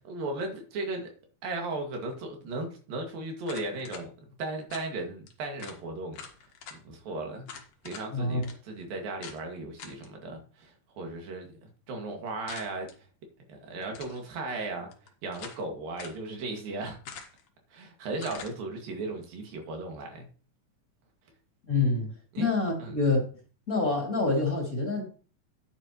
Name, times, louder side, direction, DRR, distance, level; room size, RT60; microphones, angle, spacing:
voice 1, 0.1-1.1 1.4-4.1 4.4-6.2 6.8-7.5 7.8-12.9 13.5-14.9 15.2-17.0 17.7-20.3 22.3-22.5 22.8-23.0, right 2 dB, 85° right, 3.9 m, -36 dB
sound 1, 3.4-4.0 4.7-4.9 5.3-5.4 5.6-5.8 6.1-6.8 7.5-8.1 8.4-8.5 9.2-9.4 9.8-10.1 12.5-13.0 13.8-14.2 14.9-15.6 16.0-16.2 17.0-17.5 18.2-18.5, left 6 dB, 55° left, 2.3 m, -44 dB
voice 2, 21.7-22.1 22.4-23.2 23.7-25.0, left 3 dB, 25° left, 2.6 m, -26 dB
10.5 x 9.7 x 3.1 m
omnidirectional pair, 3.9 m